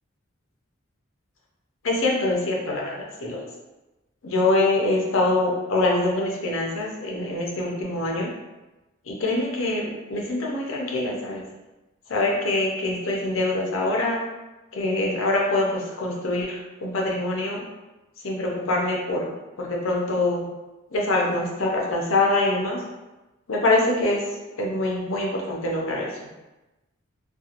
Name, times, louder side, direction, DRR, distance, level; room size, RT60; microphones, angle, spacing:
voice 1, 1.8-3.4 4.2-8.3 9.1-11.4 12.1-14.2 14.7-17.6 18.2-19.3 19.6-20.4 20.9-22.8 23.5-24.2 24.6-26.1, left 2 dB, 75° left, -2 dB, 0.6 m, -24 dB
2.8 x 2.3 x 2.5 m, 1.1 s
head